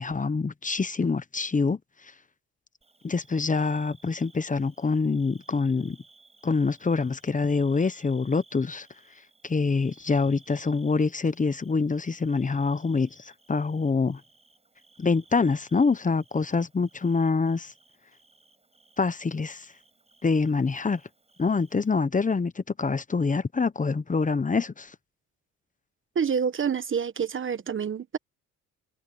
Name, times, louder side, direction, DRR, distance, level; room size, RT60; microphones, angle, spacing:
voice 1, 0.0-2.1 3.0-6.0 6.4-8.9 9.4-14.2 15.0-17.7 19.0-19.7 20.2-21.0 21.4-24.9, left 4 dB, 25° left, 1.1 m, -25 dB
Bird / Cricket, 2.8-21.9, right 3 dB, 20° right, 8.0 m, -60 dB
voice 2, 26.1-28.2, right 7 dB, 40° right, 1.2 m, -27 dB
open air
cardioid pair, 75°, 31 cm